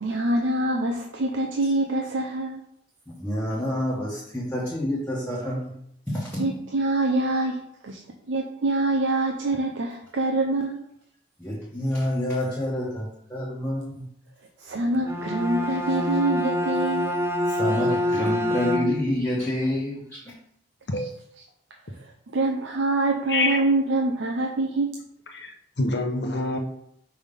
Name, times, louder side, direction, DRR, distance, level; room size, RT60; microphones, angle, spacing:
voice 1, 0.0-2.6 6.4-8.0 8.3-10.8 14.6-17.2 22.3-25.0, right 2 dB, 90° right, 2 dB, 0.6 m, -25 dB
voice 2, 3.1-5.7 6.1-6.5 11.4-14.1 17.5-20.3, left 1 dB, 10° left, -6 dB, 1.2 m, -28 dB
Bowed string instrument, 14.9-19.2, left 1 dB, 15° right, 0.4 m, -26 dB
voice 3, 23.3-23.6 25.3-26.6, left 2 dB, 65° left, 3 dB, 0.9 m, -26 dB
5.3 x 3.5 x 5.3 m, 0.73 s
head